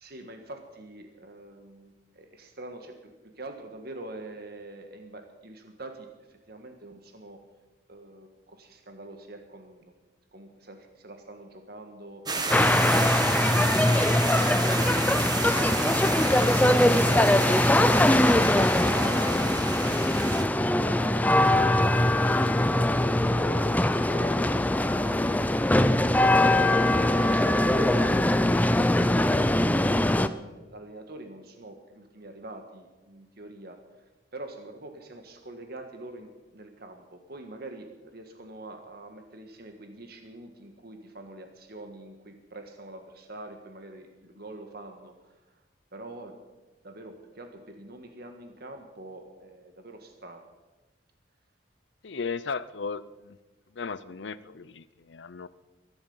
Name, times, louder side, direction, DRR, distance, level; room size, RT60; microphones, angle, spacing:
voice 1, 0.0-7.4 7.9-9.9 10.3-12.2 16.7-19.6 20.0-23.7 24.0-25.1 26.3-29.8 30.3-33.8 34.3-45.1 45.9-46.4 46.8-50.5, right 2 dB, 55° right, 5 dB, 1.7 m, -45 dB
sound 1, 12.3-20.4, right 4 dB, 20° right, 1.4 m, -32 dB
sound 2, 12.5-30.3, left 1 dB, 10° left, 0.5 m, -22 dB
voice 2, 52.0-53.4 53.8-55.5, left 5 dB, 75° left, 16 dB, 0.6 m, -36 dB
22.0 x 11.5 x 5.6 m, 1.1 s
head